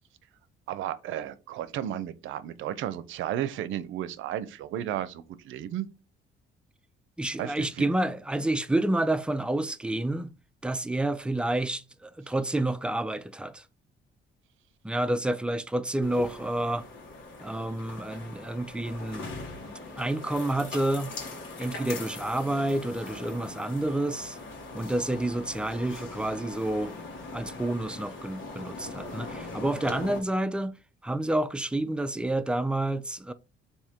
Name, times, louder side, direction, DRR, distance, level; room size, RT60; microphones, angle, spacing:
voice 1, 0.7-5.9 7.4-7.9, right 11 dB, 80° right, 0.5 m, -33 dB
voice 2, 7.2-10.3 10.6-13.6 14.8-16.9 17.4-19.3 20.0-21.1 21.6-24.4 24.7-27.0 27.3-30.7 31.0-33.3, right 1 dB, 5° right, 0.3 m, -29 dB
sound 1, 16.0-30.2, left 3 dB, 75° left, 1.4 m, -41 dB
3.6 x 2.7 x 4.2 m
cardioid pair, 90°, 20 cm